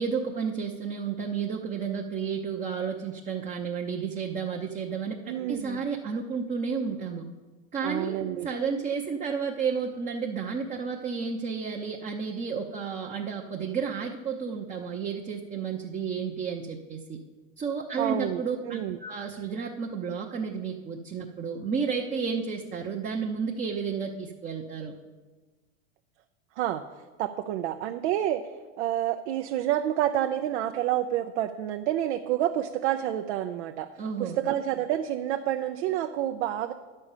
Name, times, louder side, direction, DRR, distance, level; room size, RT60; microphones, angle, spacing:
voice 1, 0.0-7.3 7.7-17.2 17.6-24.9 34.0-34.4, right 6 dB, 20° right, 1 dB, 0.7 m, -32 dB
voice 2, 5.3-5.8 7.8-8.5 18.0-19.0 26.6-26.8 27.2-28.4 28.8-33.9 34.2-36.7, right 12 dB, 75° right, 6 dB, 0.7 m, -28 dB
9.8 x 5.4 x 7.2 m, 1.3 s
supercardioid pair, 120°, 35 cm